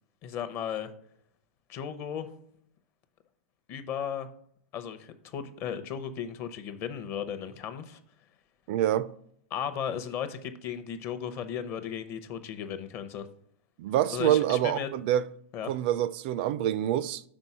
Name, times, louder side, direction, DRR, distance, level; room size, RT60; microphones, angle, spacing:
voice 1, 0.2-0.9 1.7-2.3 3.7-4.3 4.7-8.0 9.5-13.3 14.1-14.9 15.5-15.7, left 8 dB, 30° left, 0.6 m, -35 dB
voice 2, 8.7-9.1 13.8-15.2 15.7-17.2, right 11 dB, 45° right, 0.3 m, -26 dB
6.1 x 3.9 x 5.5 m
hypercardioid pair, 145°, 7 cm